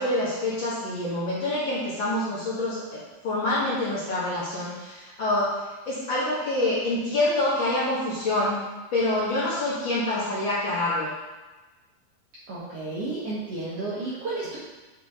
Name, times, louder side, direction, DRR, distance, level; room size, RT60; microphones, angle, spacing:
voice 1, 0.0-5.6 5.9-8.6 8.9-11.1, left 1 dB, 85° left, -9 dB, 1.0 m, -26 dB
voice 2, 12.5-14.6, right 2 dB, 80° right, -9 dB, 1.3 m, -32 dB
8.3 x 4.7 x 3.6 m, 1.2 s
omnidirectional pair, 4.6 m